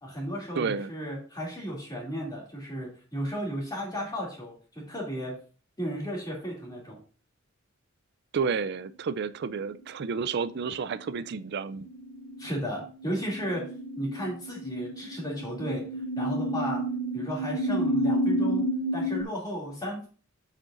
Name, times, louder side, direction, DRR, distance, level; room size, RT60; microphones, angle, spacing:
voice 1, 0.0-5.3 5.8-7.0 12.4-13.6 14.0-15.8 16.2-16.8 17.1-18.6 18.9-20.1, equal, 20° left, 2.6 m, -34 dB
voice 2, 0.6-0.9 8.3-11.9, right 5 dB, 55° right, 0.4 m, -31 dB
sound 1, 10.7-19.2, equal, 55° left, 0.7 m, -31 dB
7.8 x 7.3 x 2.5 m
head